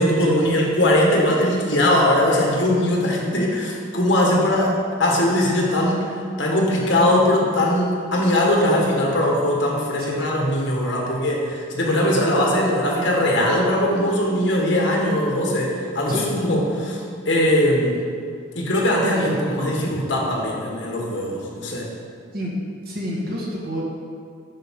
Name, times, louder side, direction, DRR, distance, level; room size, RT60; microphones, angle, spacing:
voice 1, 0.0-6.1 6.4-18.0 18.5-21.9, left 1 dB, 75° left, -2 dB, 1.6 m, -20 dB
voice 2, 22.9-23.8, equal, 55° right, -4 dB, 1.8 m, -29 dB
11.0 x 5.5 x 3.8 m, 2.2 s
head